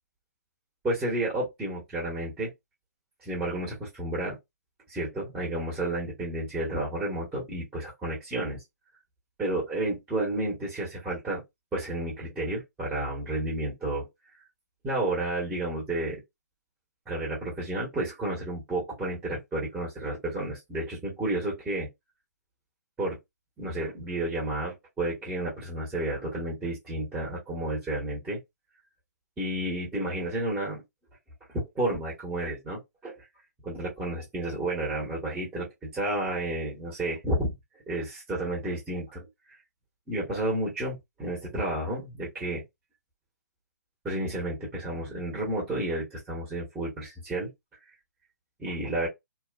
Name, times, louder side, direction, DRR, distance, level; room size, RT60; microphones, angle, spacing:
voice 1, 0.8-2.5 3.2-4.4 4.9-8.6 9.4-11.4 11.7-14.1 14.8-16.2 17.1-21.9 23.0-23.2 23.6-28.4 29.4-30.8 31.5-33.2 33.6-37.5 37.9-39.2 40.1-42.6 44.0-47.5 48.6-49.1, right 1 dB, 10° right, 1.1 m, -31 dB
2.8 x 2.3 x 2.4 m
hypercardioid pair, 140°, 10 cm